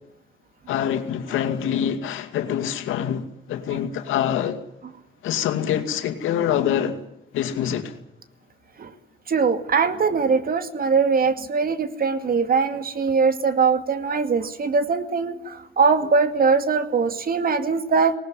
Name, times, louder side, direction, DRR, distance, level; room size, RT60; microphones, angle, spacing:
voice 1, 0.7-4.6 5.2-7.0 7.3-8.0, left 9 dB, 90° left, 2.4 m, -25 dB
voice 2, 9.3-18.2, right 5 dB, 45° right, 2.4 m, -21 dB
19.0 x 19.0 x 9.7 m
cardioid pair, 90°, 20 cm